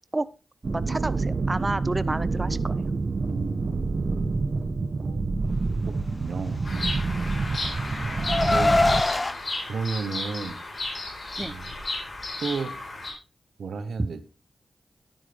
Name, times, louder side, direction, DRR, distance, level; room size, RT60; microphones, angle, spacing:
sound 1, 0.6-9.0, right 3 dB, 55° right, 0.9 m, -27 dB
voice 1, 0.7-2.8 11.4-11.5, right 2 dB, 30° right, 16 dB, 0.4 m, -30 dB
voice 2, 3.2-3.9 5.0-5.4 5.8-6.7 8.5-8.8 9.7-10.6 11.4-11.7 12.4-12.8 13.6-14.2, right 4 dB, 85° right, 13 dB, 0.8 m, -33 dB
Bird vocalization bird call bird song, 6.6-13.1, left 2 dB, 55° left, 4.2 m, -33 dB
Car, 6.8-9.3, left 2 dB, 35° left, 0.6 m, -24 dB
10.5 x 9.0 x 3.3 m, 0.31 s
cardioid pair, 50°, 0 cm